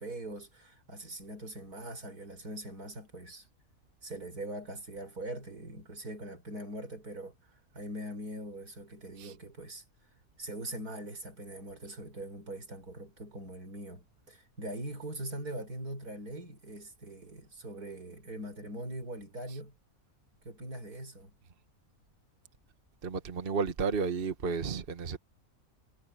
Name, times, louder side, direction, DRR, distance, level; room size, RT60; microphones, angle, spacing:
voice 1, 0.0-3.5 4.0-7.3 7.7-9.8 10.4-19.8 20.4-21.3, right 1 dB, 80° right, 5.8 m, -42 dB
voice 2, 23.0-25.2, right 5 dB, 40° right, 1.4 m, -32 dB
omnidirectional pair, 1.6 m